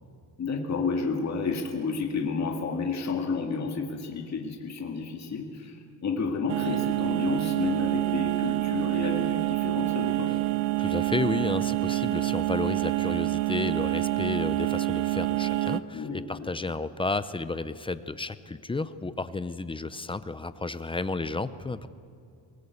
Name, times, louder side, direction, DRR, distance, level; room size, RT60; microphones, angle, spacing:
voice 1, 0.4-10.3 15.9-16.5, left 4 dB, 35° left, 2 dB, 2.0 m, -31 dB
sound 1, 6.5-15.8, right 18 dB, 75° right, 0.8 m, -27 dB
voice 2, 10.8-21.9, left 3 dB, 10° left, 13 dB, 0.5 m, -32 dB
23.0 x 17.5 x 8.3 m, 2.5 s
cardioid pair, 155°, 46 cm